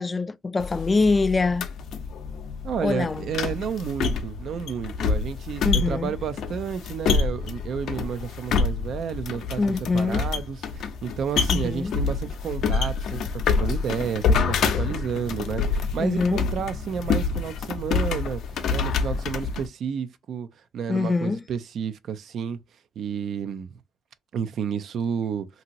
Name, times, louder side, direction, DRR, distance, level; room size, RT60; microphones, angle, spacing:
voice 1, 0.0-1.7 2.8-3.2 5.6-6.1 9.6-10.3 11.5-11.9 16.0-16.4 20.9-21.4, left 3 dB, 25° left, 0.3 m, -24 dB
sound 1, 0.6-19.7, left 5 dB, 75° left, 0.6 m, -27 dB
voice 2, 2.6-9.6 9.9-18.4 18.7-20.5 20.7-22.6 23.0-23.7 24.3-25.5, right 7 dB, 65° right, 0.4 m, -31 dB
2.9 x 2.7 x 2.6 m
cardioid pair, 90°, 0 cm